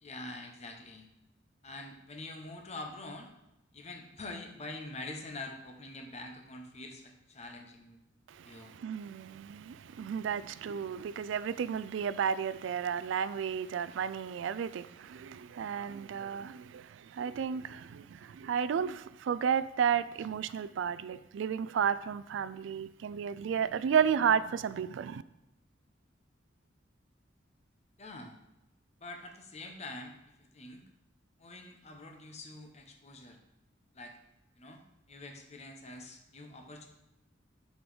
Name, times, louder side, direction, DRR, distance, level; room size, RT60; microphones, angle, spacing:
voice 1, 0.0-1.1 1.6-3.3 3.7-8.0 8.4-8.7 28.0-28.4 29.0-30.8 31.4-33.4 33.9-34.2 34.6-34.8 35.1-36.9, left 2 dB, 35° left, 1.0 m, -45 dB
voice 2, 8.3-25.2, right 7 dB, 70° right, 0.3 m, -32 dB
6.0 x 5.2 x 5.0 m
head